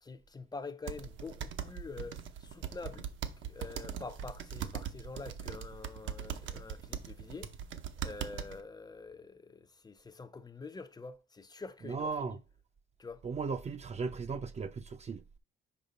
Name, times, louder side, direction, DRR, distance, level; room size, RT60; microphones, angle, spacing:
voice 1, 0.0-3.1 3.4-7.5 8.0-12.4 13.0-13.2, left 4 dB, 20° left, 0.6 m, -46 dB
sound 1, 0.9-8.6, right 8 dB, 75° right, 0.8 m, -41 dB
voice 2, 11.9-12.4 13.2-15.2, right 5 dB, 35° right, 0.4 m, -36 dB
5.4 x 4.9 x 4.1 m
cardioid pair, 90°, 20 cm